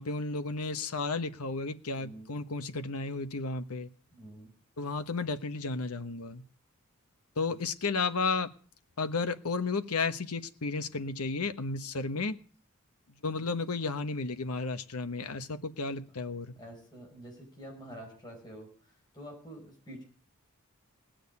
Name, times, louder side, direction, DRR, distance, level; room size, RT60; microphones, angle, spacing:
voice 1, 0.0-3.9 4.8-6.4 7.4-8.5 9.0-12.4 13.2-16.5, left 4 dB, 85° left, 1.1 m, -33 dB
voice 2, 2.0-2.3 4.1-4.5 13.4-13.5 16.6-20.0, equal, 20° left, 5.7 m, -47 dB
19.0 x 6.5 x 9.6 m
head